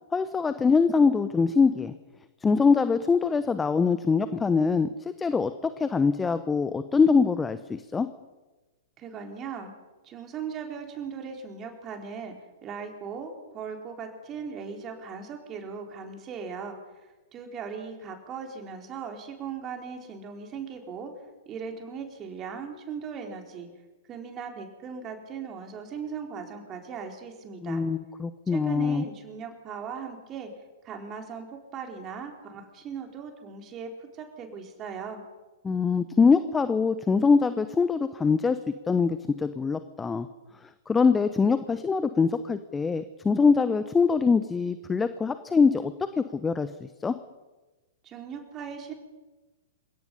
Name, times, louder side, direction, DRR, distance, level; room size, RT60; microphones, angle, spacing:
voice 1, 0.1-1.9 2.4-8.1 27.6-29.0 35.6-40.3 40.9-47.1, left 5 dB, 15° left, 12 dB, 1.0 m, -23 dB
voice 2, 9.0-9.7 10.0-12.3 12.6-16.8 17.3-21.1 21.5-23.7 24.1-27.8 28.5-30.5 30.8-31.5 31.7-35.2 48.0-48.9, right 6 dB, 25° right, 3 dB, 4.3 m, -38 dB
28.5 x 17.0 x 5.6 m, 1.1 s
figure-of-eight pair, 105°, 0 cm